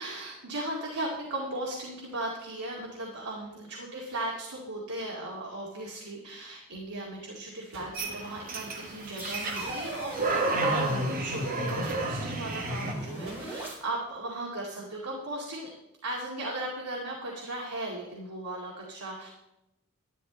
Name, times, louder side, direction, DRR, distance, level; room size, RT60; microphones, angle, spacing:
voice 1, 0.0-15.7 16.0-19.3, right 1 dB, 80° right, -3 dB, 2.3 m, -37 dB
sound 1, 7.7-8.4 9.6-10.2 11.8-12.4 13.3-13.8, right 2 dB, 65° right, 3.3 m, -48 dB
sound 2, 7.9-12.9, right 2 dB, 40° right, 1.9 m, -31 dB
sound 3, 8.5-13.7, right 1 dB, 10° right, 4.3 m, -40 dB
12.0 x 11.0 x 4.0 m, 0.89 s
head